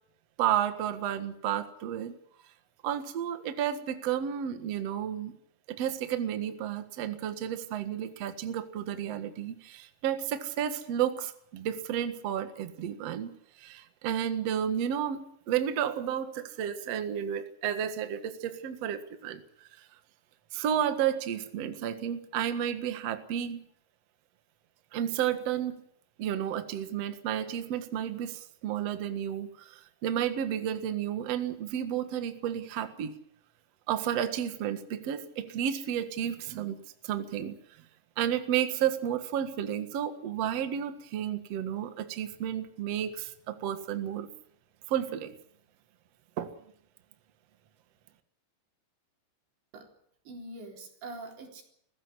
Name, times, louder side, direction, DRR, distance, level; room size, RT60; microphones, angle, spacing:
voice 1, 0.4-2.1 2.8-5.3 5.7-13.3 13.6-19.4 20.5-23.6 24.9-25.8 26.2-33.1 33.9-37.5 38.2-44.3 44.9-45.3 46.4-46.5, right 10 dB, 90° right, 9 dB, 1.4 m, -32 dB
voice 2, 50.3-51.6, right 2 dB, 65° right, 2 dB, 6.0 m, -43 dB
21.5 x 16.0 x 9.9 m, 0.72 s
omnidirectional pair, 5.7 m